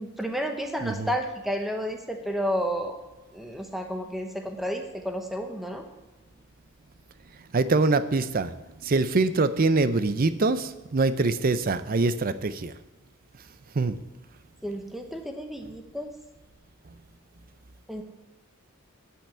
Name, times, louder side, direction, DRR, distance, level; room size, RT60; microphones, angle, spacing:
voice 1, 0.0-3.0 3.3-5.8 14.6-16.1 17.9-18.0, equal, ahead, 4 dB, 0.9 m, -31 dB
voice 2, 7.5-8.5 8.8-12.7 13.8-14.0, right 3 dB, 40° right, 13 dB, 0.5 m, -24 dB
8.9 x 5.7 x 8.2 m, 1.0 s
head